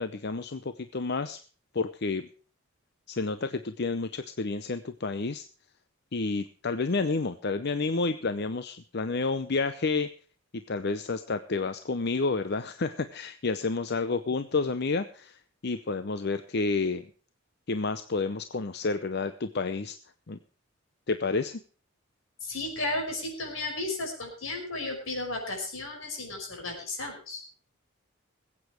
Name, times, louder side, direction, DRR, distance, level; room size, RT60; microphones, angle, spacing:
voice 1, 0.0-1.4 1.7-2.3 3.1-5.5 6.1-10.1 10.5-17.1 17.7-20.0 20.3-20.4 21.1-21.6, left 3 dB, 55° left, 11 dB, 0.7 m, -30 dB
voice 2, 22.4-27.4, left 2 dB, 85° left, 2 dB, 5.4 m, -34 dB
21.0 x 8.6 x 4.5 m, 0.38 s
head